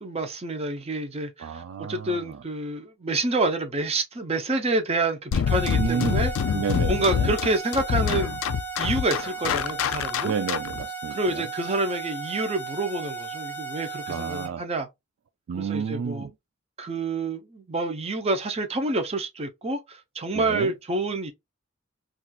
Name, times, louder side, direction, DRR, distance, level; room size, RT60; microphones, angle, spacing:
voice 1, 0.0-6.3 6.9-8.3 8.8-10.3 11.1-14.9 15.6-16.3 16.8-21.3, right 2 dB, 30° right, 0.6 m, -28 dB
voice 2, 1.4-2.4 5.8-6.2 6.5-7.3 10.2-11.5 14.1-14.6 15.5-16.3 20.3-20.7, right 6 dB, 70° right, 0.3 m, -31 dB
sound 1, 5.3-10.8, left 8 dB, 80° left, 0.3 m, -26 dB
sound 2, 5.5-14.5, right 5 dB, 10° left, 0.9 m, -36 dB
4.1 x 2.4 x 2.3 m
head